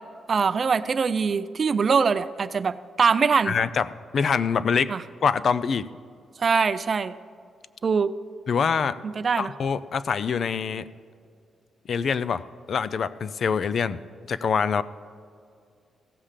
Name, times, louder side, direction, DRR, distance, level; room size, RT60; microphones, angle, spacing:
voice 1, 0.3-3.5 4.9-5.0 6.4-7.1 7.8-8.1 9.0-9.5, right 5 dB, 40° right, 13 dB, 0.4 m, -23 dB
voice 2, 3.5-3.9 4.1-4.9 5.2-5.8 8.5-9.0 9.4-10.8 11.9-12.4 12.7-14.0 14.3-14.8, left 6 dB, 50° left, 15 dB, 0.4 m, -24 dB
16.0 x 7.3 x 5.0 m, 2.3 s
cardioid pair, 135°, 0 cm